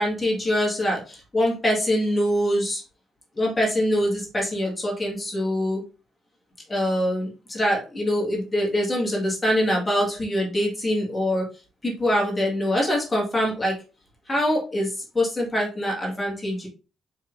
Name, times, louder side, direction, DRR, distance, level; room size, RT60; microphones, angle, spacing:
voice 1, 0.0-2.8 3.4-5.8 6.7-11.4 11.8-13.7 14.3-16.7, equal, 20° left, -3 dB, 2.0 m, -24 dB
4.7 x 4.2 x 2.6 m, 0.34 s
cardioid pair, 90°, 0 cm